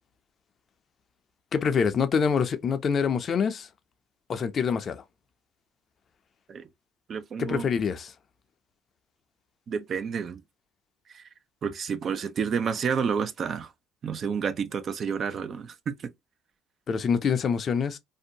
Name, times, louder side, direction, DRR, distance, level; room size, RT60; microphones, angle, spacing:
voice 1, 1.5-3.7 4.3-5.0 7.4-8.1 16.9-18.0, left 6 dB, 45° left, 0.5 m, -25 dB
voice 2, 7.1-7.6 9.7-10.4 11.1-11.2 11.6-13.7 14.0-16.1, right 6 dB, 45° right, 0.4 m, -30 dB
2.6 x 2.1 x 2.7 m
supercardioid pair, 85°, 0 cm